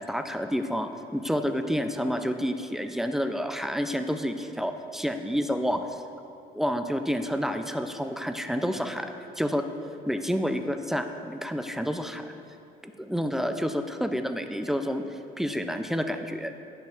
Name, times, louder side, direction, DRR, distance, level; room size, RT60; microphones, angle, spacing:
voice 1, 0.0-6.0 6.5-9.6 10.1-12.3 12.8-16.5, equal, ahead, 7 dB, 0.3 m, -29 dB
9.7 x 6.6 x 2.4 m, 2.7 s
cardioid pair, 110°, 17 cm